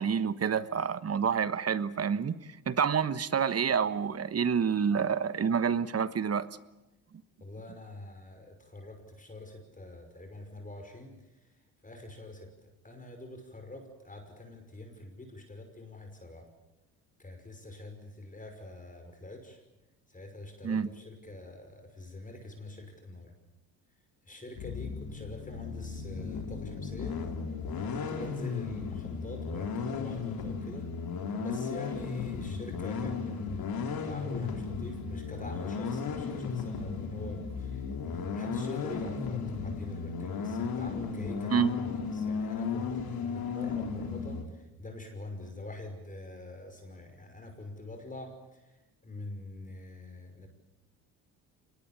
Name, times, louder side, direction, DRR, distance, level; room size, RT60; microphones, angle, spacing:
voice 1, 0.0-2.4 2.7-6.5 20.6-20.9 41.5-41.7, right 7 dB, 35° right, 1.3 m, -28 dB
voice 2, 7.4-11.2 11.8-16.5 17.2-19.6 20.1-23.3 24.3-27.2 27.9-30.9 31.4-48.6 49.0-50.5, left 2 dB, 20° left, 5.7 m, -45 dB
sound 1, 24.6-44.4, left 5 dB, 55° left, 3.9 m, -35 dB
25.0 x 20.5 x 8.6 m
hypercardioid pair, 65°, 42 cm